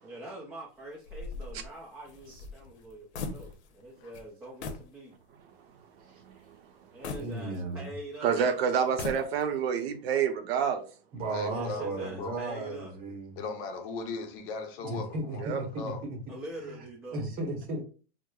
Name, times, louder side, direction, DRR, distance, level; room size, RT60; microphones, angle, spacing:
voice 1, 0.0-5.2 6.9-8.4 11.4-12.9 16.3-17.3, right 1 dB, 5° right, 0.4 m, -44 dB
sound 1, 1.0-3.9 4.1-4.3 4.6-4.9 5.4-5.5 7.0-8.0 8.8-9.7, left 4 dB, 80° left, 0.8 m, -40 dB
voice 2, 7.2-7.9 11.1-13.4 14.8-16.2 16.7-16.8 17.1-17.8, right 2 dB, 25° right, 0.9 m, -35 dB
voice 3, 8.2-10.8 15.4-15.6, right 7 dB, 65° right, 0.7 m, -27 dB
voice 4, 11.3-12.3 13.4-16.0, left 4 dB, 55° left, 0.8 m, -38 dB
4.7 x 2.1 x 2.3 m
supercardioid pair, 150°, 33 cm